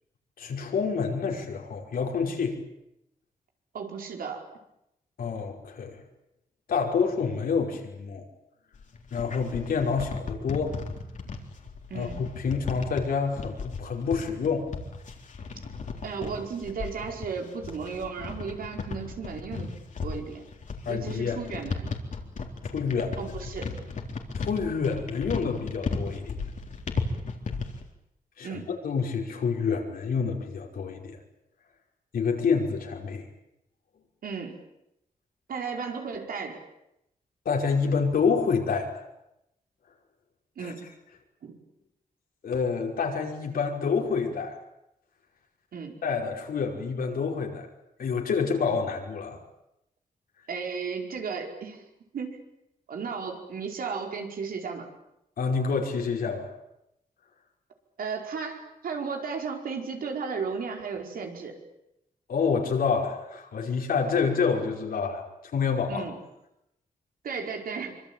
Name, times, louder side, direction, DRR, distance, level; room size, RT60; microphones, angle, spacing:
voice 1, 0.4-2.6 5.2-6.0 6.7-8.2 9.1-10.7 11.9-14.7 20.9-21.4 22.6-23.2 24.3-26.3 28.4-31.2 32.1-33.2 37.5-39.0 40.6-40.7 42.4-44.6 46.0-47.7 48.0-49.4 55.4-56.5 62.3-65.2 65.5-66.0, left 5 dB, 80° left, 1 dB, 5.4 m, -28 dB
voice 2, 3.7-4.5 11.9-12.2 16.0-19.7 20.0-20.5 20.9-21.9 23.2-23.7 28.4-28.7 34.2-34.6 35.5-36.6 40.6-40.9 41.4-41.6 45.7-46.0 50.5-51.8 52.1-52.4 52.9-54.9 58.0-61.6 65.9-66.2 67.2-68.0, right 5 dB, 75° right, 3 dB, 5.0 m, -34 dB
sound 1, 8.7-27.8, left 4 dB, 55° left, 3.9 m, -35 dB
25.0 x 25.0 x 9.0 m, 0.84 s
cardioid pair, 100°, 15 cm